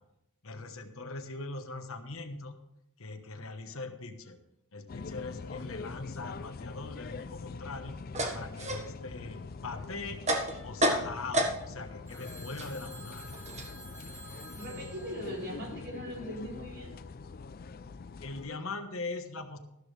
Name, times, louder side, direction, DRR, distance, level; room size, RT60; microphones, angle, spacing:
voice 1, 0.4-2.6 3.0-4.4 4.7-8.0 8.3-10.2 10.6-13.4 18.2-19.6, left 3 dB, 65° left, 6 dB, 1.3 m, -41 dB
sound 1, 4.9-18.5, left 4 dB, 40° left, 0.4 m, -43 dB
sound 2, 7.3-11.9 12.2-15.1, right 1 dB, 30° right, 1.5 m, -33 dB
Telephone, 12.1-16.3, right 2 dB, 15° right, 3.0 m, -51 dB
voice 2, 14.5-16.9, equal, 50° right, -3 dB, 4.3 m, -40 dB
13.0 x 13.0 x 3.4 m, 0.80 s
head